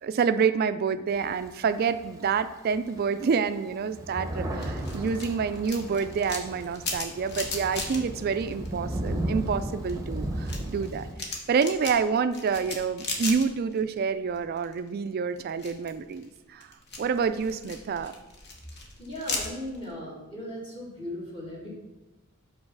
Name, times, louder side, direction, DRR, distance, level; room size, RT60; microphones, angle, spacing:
voice 1, 0.0-11.1 11.5-16.7 17.0-18.2, right 6 dB, 45° right, 12 dB, 0.3 m, -28 dB
Thunder, 1.1-2.4 3.0-3.1 3.3-11.1, right 1 dB, 15° right, 0.8 m, -34 dB
sound 1, 4.6-9.2 9.5-14.0 14.3-14.9 15.4-19.9, left 3 dB, 50° left, 1.1 m, -37 dB
voice 2, 19.0-21.7, left 1 dB, 25° left, -5 dB, 1.8 m, -37 dB
5.4 x 4.0 x 5.9 m, 1.0 s
head